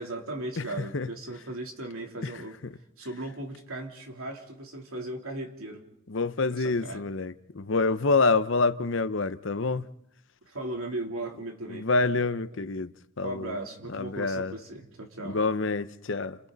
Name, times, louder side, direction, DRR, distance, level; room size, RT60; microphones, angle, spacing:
voice 1, 0.0-2.5 3.0-5.8 6.5-7.0 10.5-11.9 13.2-15.4, right 2 dB, 80° right, 3.3 m, -37 dB
voice 2, 0.6-1.1 2.2-2.3 2.6-2.7 6.1-9.9 11.7-13.6 13.9-14.5 15.2-16.4, left 3 dB, 60° left, 0.7 m, -27 dB
30.0 x 26.5 x 4.0 m
head